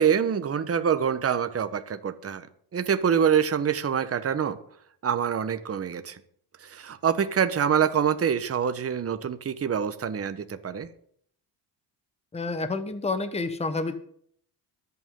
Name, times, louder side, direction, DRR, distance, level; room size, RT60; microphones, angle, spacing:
voice 1, 0.0-2.5 2.7-4.6 5.0-6.2 6.6-10.9, right 7 dB, 30° right, 10 dB, 1.2 m, -25 dB
voice 2, 12.3-14.0, left 3 dB, 15° left, 9 dB, 1.2 m, -29 dB
24.0 x 8.4 x 3.8 m, 0.63 s
cardioid pair, 105°, 44 cm